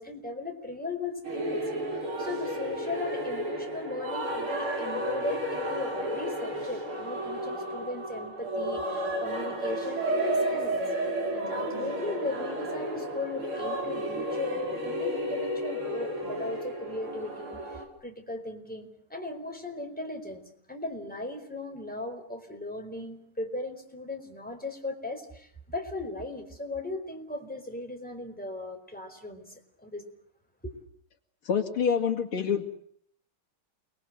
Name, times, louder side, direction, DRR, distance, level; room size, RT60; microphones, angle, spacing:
voice 1, 0.0-1.6 1.9-10.8 11.3-20.4 20.7-30.0 30.6-30.7, left 2 dB, 5° left, 3 dB, 4.5 m, -37 dB
sound 1, 1.2-17.9, right 1 dB, 80° right, 5.4 m, -32 dB
voice 2, 31.4-32.6, left 6 dB, 75° left, 3 dB, 3.0 m, -26 dB
29.5 x 21.0 x 8.0 m, 0.63 s
omnidirectional pair, 2.3 m